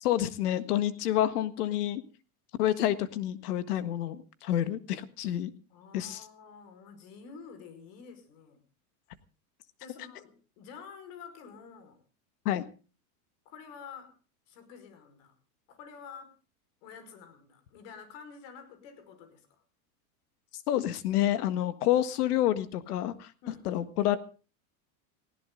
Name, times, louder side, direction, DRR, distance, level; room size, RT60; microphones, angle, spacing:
voice 1, 0.0-2.0 2.6-5.5 5.9-6.2 12.5-12.6 20.7-23.3 23.7-24.2, left 12 dB, 90° left, 13 dB, 1.7 m, -28 dB
voice 2, 5.7-8.6 9.8-12.0 13.5-14.1 14.5-15.3 15.7-16.3 16.8-19.6 23.4-23.7, left 6 dB, 60° left, 10 dB, 5.2 m, -49 dB
19.0 x 16.5 x 3.8 m, 0.36 s
supercardioid pair, 150°, 44 cm